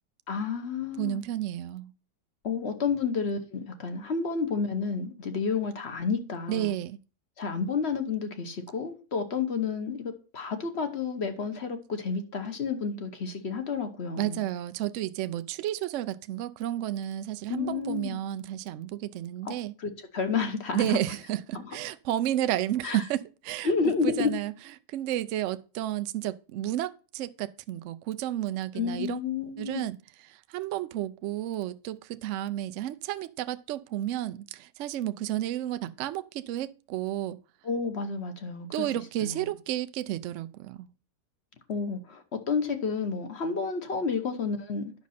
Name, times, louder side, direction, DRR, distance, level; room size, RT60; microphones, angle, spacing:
voice 1, 0.3-1.2 2.4-6.7 7.4-14.4 17.5-18.2 19.4-19.5 19.8-21.0 22.8-23.0 23.6-24.3 28.7-29.8 37.6-38.9 39.2-39.5 41.7-44.9, left 5 dB, 45° left, 1.1 m, -30 dB
voice 2, 1.0-1.9 6.5-7.0 14.2-19.7 20.7-23.7 24.0-24.5 24.9-29.2 29.6-30.0 30.3-37.4 38.7-40.9, right 13 dB, 80° right, 0.6 m, -32 dB
9.4 x 6.2 x 4.1 m
omnidirectional pair, 1.8 m